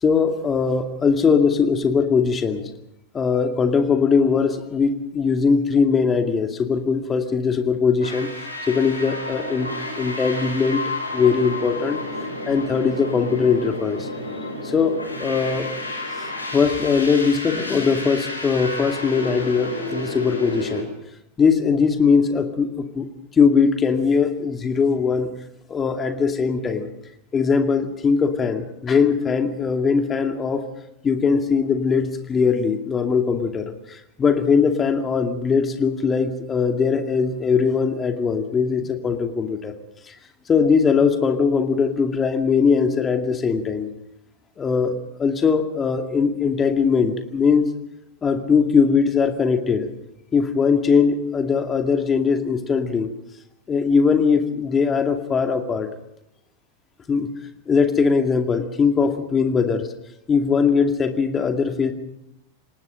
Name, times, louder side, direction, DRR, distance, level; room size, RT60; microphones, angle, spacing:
voice 1, 0.0-2.7 3.1-8.3 8.6-9.7 10.0-10.8 11.1-12.0 12.5-14.1 14.6-15.7 16.2-16.3 16.5-20.9 21.4-23.1 23.3-25.3 25.7-26.9 27.3-30.6 31.0-39.7 40.1-40.2 40.5-43.9 44.6-44.9 45.2-47.7 48.2-49.9 50.3-53.1 53.7-55.9 57.1-57.3 57.7-59.9 60.3-61.9, left 5 dB, 20° left, 6 dB, 2.3 m, -20 dB
sound 1, 8.0-20.8, left 1 dB, 80° left, 5.0 m, -31 dB
28.0 x 18.5 x 5.2 m, 0.81 s
figure-of-eight pair, 90°, 0 cm